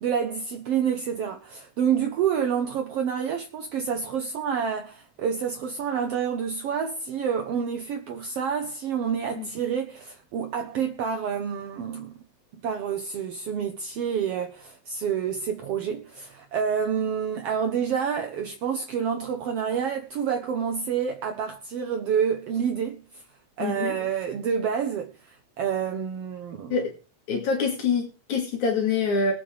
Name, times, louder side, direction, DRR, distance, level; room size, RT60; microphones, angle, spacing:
voice 1, 0.0-12.1 12.6-23.0 23.6-25.1 25.6-26.8, right 7 dB, 65° right, 1.8 m, -28 dB
voice 2, 23.6-23.9 26.7-26.9 27.3-29.3, left 5 dB, 80° left, 3.5 m, -25 dB
22.5 x 7.5 x 3.4 m
omnidirectional pair, 3.3 m